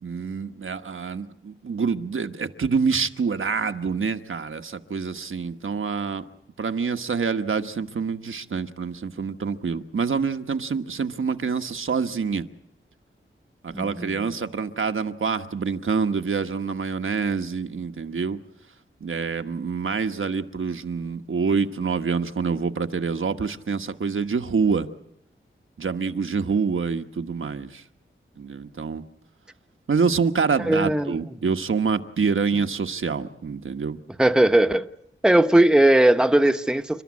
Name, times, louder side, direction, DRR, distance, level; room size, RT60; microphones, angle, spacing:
voice 1, 0.0-6.2 6.6-12.4 13.6-18.4 19.0-24.9 25.8-27.8 28.4-29.0 29.9-34.0, right 5 dB, 75° right, 1.3 m, -26 dB
voice 2, 13.7-14.2 30.6-31.2 34.2-34.9 35.2-37.0, right 1 dB, 5° right, 1.0 m, -18 dB
29.5 x 13.0 x 9.7 m
wide cardioid pair, 85°, 21 cm